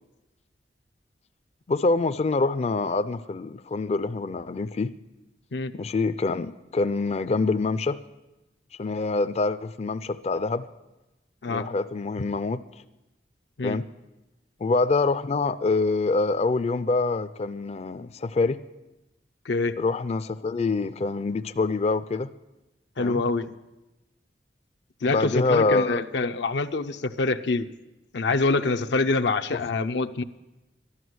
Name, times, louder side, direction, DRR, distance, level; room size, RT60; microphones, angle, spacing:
voice 1, 1.7-4.9 5.7-8.0 8.8-10.7 11.5-12.6 13.6-13.8 14.6-18.6 19.8-22.3 23.0-23.2 25.1-26.0 29.5-29.6, left 3 dB, 35° left, 12 dB, 0.4 m, -25 dB
voice 2, 19.4-19.8 23.0-23.5 25.0-27.7 28.1-30.2, left 3 dB, 80° left, 7 dB, 0.6 m, -25 dB
13.0 x 11.0 x 7.9 m, 1.0 s
head